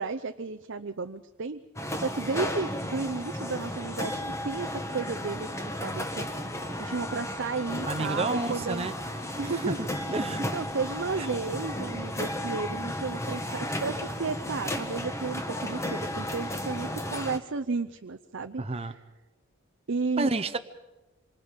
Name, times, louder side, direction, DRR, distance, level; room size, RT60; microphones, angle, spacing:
voice 1, 0.0-1.6 2.0-4.1 4.4-6.3 6.8-8.9 9.4-9.8 10.5-18.9 19.9-20.3, right 4 dB, 60° right, 7 dB, 0.7 m, -33 dB
sound 1, 1.8-17.4, left 1 dB, 15° left, 1.5 m, -34 dB
voice 2, 7.9-9.0 9.7-10.6 11.2-11.3 18.6-18.9 20.2-20.6, right 2 dB, 30° right, 8 dB, 0.8 m, -30 dB
27.0 x 25.5 x 5.2 m, 1.1 s
head